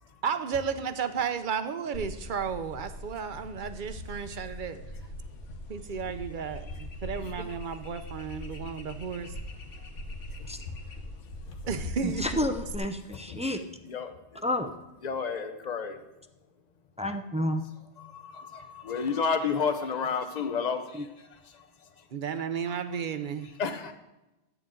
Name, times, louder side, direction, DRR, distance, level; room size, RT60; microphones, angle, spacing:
voice 1, 0.2-4.8 5.7-9.3 11.7-12.5 22.1-23.5, right 6 dB, 50° right, 10 dB, 0.8 m, -33 dB
sound 1, 1.9-12.8, left 1 dB, 80° left, 1.5 m, -41 dB
voice 2, 12.0-13.6 14.4-14.7 17.0-17.6 20.9-21.1, left 1 dB, 10° right, 6 dB, 0.4 m, -30 dB
voice 3, 15.0-16.0 18.1-21.0 23.6-23.9, left 5 dB, 40° left, 8 dB, 0.9 m, -30 dB
13.0 x 9.0 x 3.8 m, 0.98 s
omnidirectional pair, 1.2 m